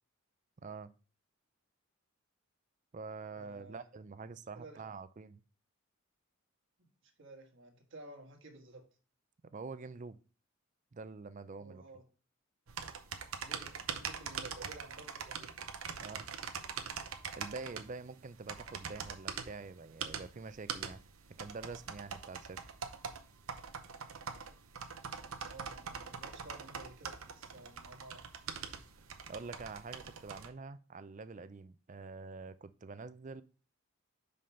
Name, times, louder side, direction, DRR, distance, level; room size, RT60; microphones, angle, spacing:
voice 1, 0.6-0.9 2.9-5.4 9.5-10.2 10.9-11.8 16.0-16.3 17.3-21.0 21.4-22.6 29.3-33.4, right 4 dB, 35° right, 0.4 m, -46 dB
voice 2, 3.3-3.9 4.5-4.8 7.2-8.9 11.6-12.0 13.4-15.5 18.7-18.8 25.4-28.3 28.6-28.8, right 2 dB, 60° right, 1.5 m, -53 dB
sound 1, 12.7-30.5, right 6 dB, 75° right, 0.8 m, -43 dB
5.6 x 5.2 x 5.6 m
head